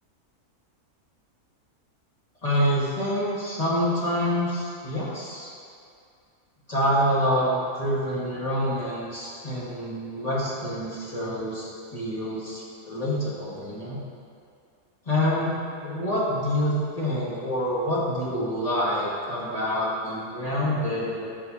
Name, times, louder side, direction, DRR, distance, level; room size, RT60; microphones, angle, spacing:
voice 1, 2.4-5.5 6.7-14.0 15.1-15.5 15.8-21.3, equal, 25° left, -8 dB, 2.0 m, -27 dB
13.0 x 5.4 x 2.9 m, 2.4 s
omnidirectional pair, 1.6 m